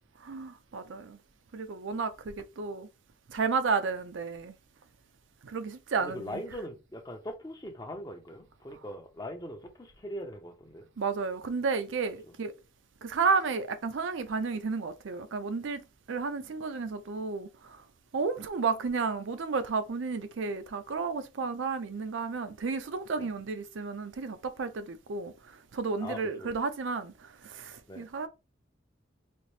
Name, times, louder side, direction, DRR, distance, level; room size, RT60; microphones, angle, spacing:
voice 1, 0.2-1.2 1.5-2.9 3.3-4.5 5.4-6.4 11.0-12.5 13.0-15.8 16.1-17.8 18.1-25.3 25.7-28.3, right 4 dB, 75° right, 0.5 m, -32 dB
voice 2, 6.0-10.9 23.2-23.3 26.0-26.5 27.9-28.1, equal, 20° left, 0.6 m, -41 dB
4.1 x 2.0 x 3.1 m
head